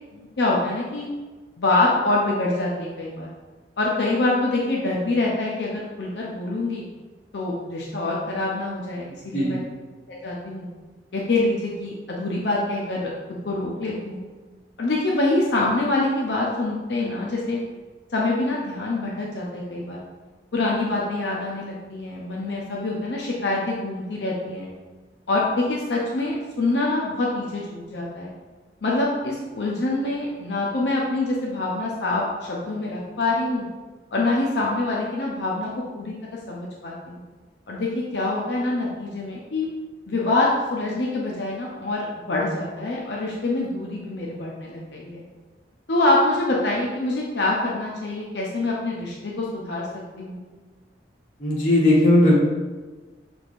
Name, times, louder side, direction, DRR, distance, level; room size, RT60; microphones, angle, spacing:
voice 1, 0.1-1.1 1.6-3.3 3.8-6.9 7.3-9.6 10.2-10.7 11.1-13.1 13.4-14.2 14.8-17.6 18.1-20.0 20.5-24.7 25.3-28.3 28.8-33.7 34.1-36.1 36.5-37.2 37.7-39.7 40.1-45.2 45.9-49.9 50.2-50.4, left 2 dB, 80° left, -4 dB, 0.6 m, -25 dB
voice 2, 9.1-9.6 51.4-52.4, left 1 dB, 45° left, -5 dB, 1.2 m, -18 dB
6.0 x 3.5 x 2.5 m, 1.3 s
head